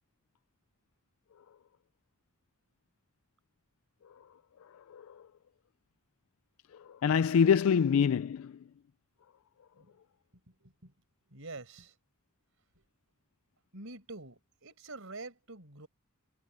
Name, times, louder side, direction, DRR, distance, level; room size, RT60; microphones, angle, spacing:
voice 1, 4.6-5.3 6.7-8.7, left 7 dB, 75° left, 0.4 m, -27 dB
voice 2, 10.3-10.9 11.3-12.0 12.8-12.9 13.7-15.9, right 3 dB, 70° right, 5.4 m, -47 dB
head